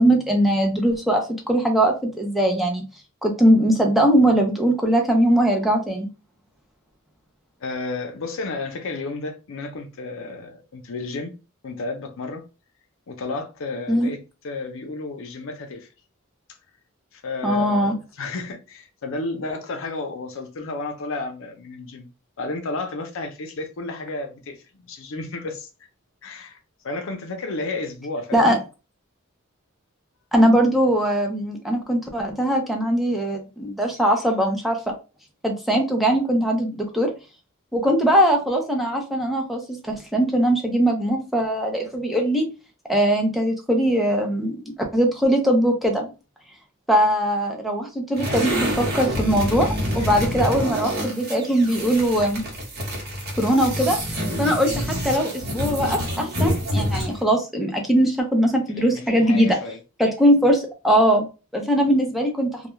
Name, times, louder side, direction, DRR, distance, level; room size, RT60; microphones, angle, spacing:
voice 1, 0.0-2.8 3.2-6.1 13.9-14.1 17.4-17.9 28.3-28.6 30.3-34.8 35.4-37.1 37.7-42.5 42.9-44.6 44.9-46.1 46.9-52.4 53.4-54.0 54.4-59.6 60.0-61.3 61.5-62.5, right 1 dB, ahead, 0.5 m, -20 dB
voice 2, 7.6-11.3 11.6-12.4 13.1-15.9 17.1-22.1 22.4-25.7 26.2-26.6 26.8-28.5 50.0-50.1 58.7-59.8, left 3 dB, 65° left, 0.6 m, -32 dB
sound 1, 48.1-57.2, equal, 50° right, 1.1 m, -27 dB
2.2 x 2.2 x 3.0 m
head